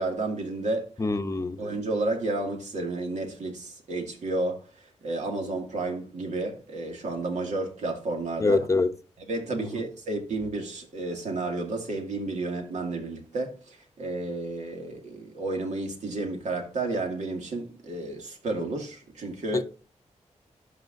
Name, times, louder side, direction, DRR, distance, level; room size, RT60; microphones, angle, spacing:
voice 1, 0.0-0.9 1.6-4.6 5.0-8.6 9.3-19.6, right 2 dB, 80° right, 2.2 m, -31 dB
voice 2, 1.0-1.6 8.4-8.9 9.6-9.7 19.5-19.6, left 3 dB, 25° left, 0.7 m, -25 dB
12.0 x 4.8 x 2.6 m
wide cardioid pair, 100°, 12 cm